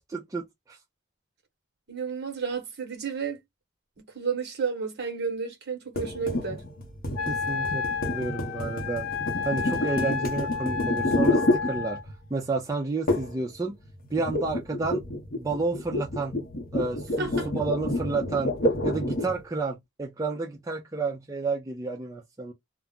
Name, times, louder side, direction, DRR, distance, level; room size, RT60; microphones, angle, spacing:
voice 1, 0.1-0.8 7.3-9.0 9.4-12.0 12.3-13.8 14.1-15.0 15.3-16.4 16.7-18.6 18.8-22.5, right 3 dB, 15° right, 0.4 m, -31 dB
voice 2, 1.9-3.4 4.1-6.6 17.2-17.5, right 5 dB, 55° right, 1.0 m, -31 dB
sound 1, 6.0-12.3 13.1-13.4 13.7-19.4, left 1 dB, 45° left, 0.7 m, -29 dB
Wind instrument woodwind instrument, 7.1-12.0, left 6 dB, 85° left, 0.4 m, -31 dB
2.3 x 2.1 x 3.6 m
head